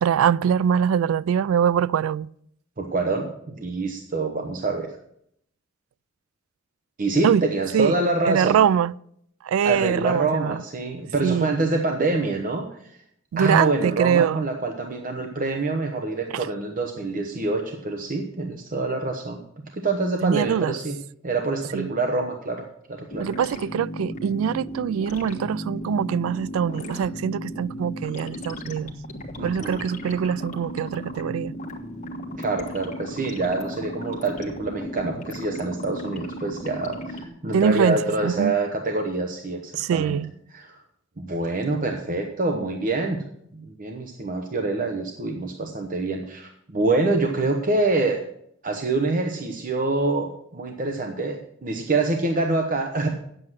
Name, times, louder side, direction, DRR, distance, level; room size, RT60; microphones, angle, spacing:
voice 1, 0.0-2.3 7.2-7.4 7.7-7.9 8.3-8.9 9.4-10.6 11.2-11.6 13.3-14.4 16.3-16.5 20.2-20.7 21.7-21.9 23.2-28.9 29.4-31.5 37.5-38.6 39.8-40.3, right 8 dB, 80° right, 0.3 m, -23 dB
voice 2, 2.8-4.9 7.0-8.6 9.6-13.0 13.4-19.4 19.7-20.9 21.2-22.6 22.9-23.3 29.4-29.9 32.4-40.2 40.5-40.8 41.2-43.2 43.5-48.2 48.6-53.1, right 3 dB, 40° right, 0.9 m, -26 dB
sound 1, 23.1-37.3, equal, 35° left, 1.4 m, -35 dB
9.4 x 7.8 x 6.2 m
head